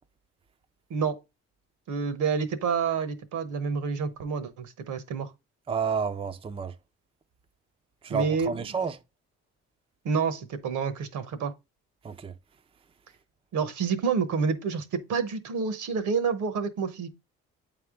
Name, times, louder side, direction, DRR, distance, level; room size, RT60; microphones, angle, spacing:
voice 1, 1.9-5.3 8.1-8.8 10.0-11.5 13.5-17.1, right 5 dB, 75° right, 1.0 m, -28 dB
voice 2, 5.7-6.7 8.0-8.9 12.0-12.3, right 6 dB, 20° right, 0.5 m, -30 dB
8.6 x 3.5 x 3.6 m
cardioid pair, 90°, 30 cm